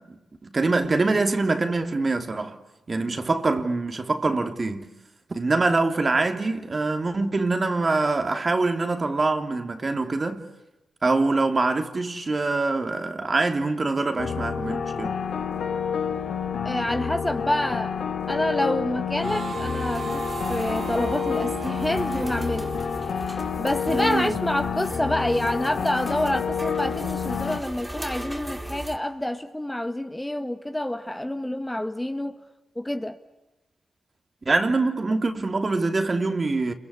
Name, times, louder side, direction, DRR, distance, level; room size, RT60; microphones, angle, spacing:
voice 1, 0.0-2.6 2.9-4.9 5.3-10.5 11.0-15.2 23.9-24.4 34.4-36.7, right 3 dB, 40° right, 3.1 m, -24 dB
sound 1, 14.2-27.6, left 7 dB, 75° left, 2.4 m, -29 dB
voice 2, 16.6-18.0 18.3-22.7 23.6-32.4 32.8-33.2, left 1 dB, 10° left, 1.9 m, -27 dB
Harmonica, 19.2-23.7, right 5 dB, 60° right, 2.6 m, -36 dB
sound 2, 19.7-29.0, right 1 dB, 15° right, 4.6 m, -38 dB
28.5 x 23.5 x 8.5 m
supercardioid pair, 50°, 0 cm